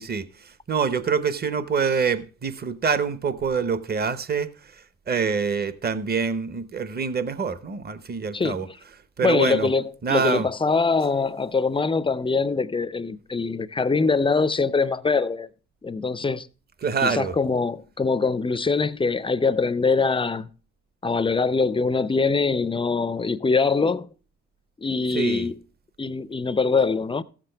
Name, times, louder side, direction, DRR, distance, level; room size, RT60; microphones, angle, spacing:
voice 1, 0.0-8.7 9.2-9.7 10.0-10.5 16.8-17.3 25.1-25.5, right 5 dB, 30° right, 0.8 m, -26 dB
voice 2, 8.3-8.6 9.2-15.5 15.8-16.5 17.0-20.5 21.0-24.1 24.8-25.6 26.0-27.2, left 4 dB, 20° left, 0.4 m, -23 dB
14.5 x 7.6 x 3.3 m
cardioid pair, 90°, 30 cm